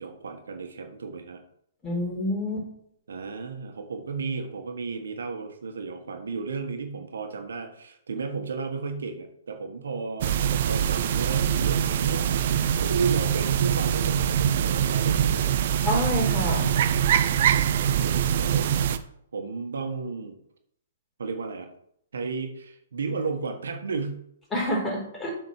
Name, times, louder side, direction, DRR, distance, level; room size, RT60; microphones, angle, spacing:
voice 1, 0.0-1.4 3.1-10.3 10.6-15.5 18.0-18.7 19.3-20.4 21.2-21.7 22.1-24.2, right 4 dB, 80° right, 5 dB, 1.4 m, -33 dB
voice 2, 1.8-2.7 15.8-16.7 24.5-25.3, left 1 dB, 10° left, -3 dB, 4.1 m, -27 dB
sound 1, 10.2-19.0, right 9 dB, 55° right, 0.7 m, -23 dB
7.9 x 4.6 x 6.4 m, 0.71 s
hypercardioid pair, 135°, 0 cm